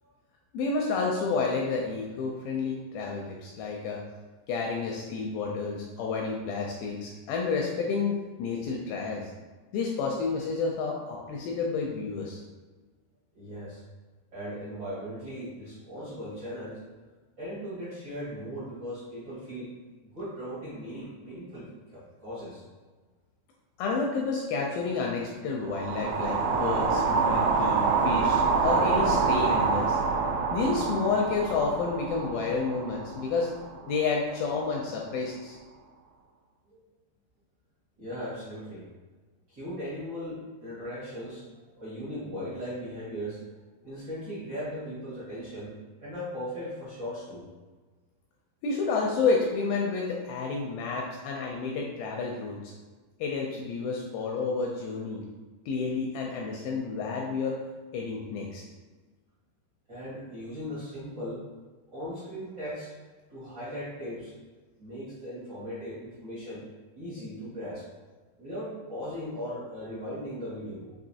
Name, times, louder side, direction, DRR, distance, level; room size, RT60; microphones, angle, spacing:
voice 1, 0.5-4.0 4.5-9.3 9.7-12.4 23.8-30.0 30.5-33.5 33.9-35.6 48.6-52.7 53.2-55.2 55.7-57.6 57.9-58.6, left 4 dB, 85° left, -1 dB, 2.1 m, -30 dB
voice 2, 13.3-13.8 14.3-16.8 17.4-19.7 20.0-22.6 36.7-36.8 38.0-38.8 39.5-41.4 41.8-43.5 43.8-45.7 46.0-47.4 59.9-61.4 61.9-62.9 63.3-64.3 64.8-66.7 66.9-67.9 68.4-70.9, equal, 65° right, -12 dB, 1.0 m, -38 dB
sound 1, 25.7-33.9, right 4 dB, 85° right, 2.5 m, -26 dB
6.2 x 2.6 x 2.7 m, 1.3 s
omnidirectional pair, 4.6 m